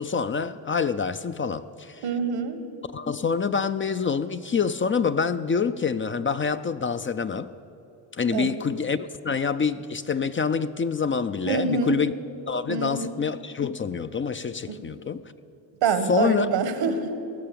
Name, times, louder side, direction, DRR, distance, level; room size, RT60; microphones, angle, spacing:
voice 1, 0.0-2.0 2.9-7.5 8.1-12.1 12.5-15.2 16.1-16.5, left 5 dB, 30° left, 11 dB, 0.5 m, -26 dB
voice 2, 2.0-2.6 8.3-8.5 11.4-12.0 12.7-13.1 14.7-14.8 15.8-17.2, right 5 dB, 80° right, 9 dB, 1.4 m, -26 dB
17.5 x 6.8 x 8.5 m, 2.9 s
cardioid pair, 70°, 44 cm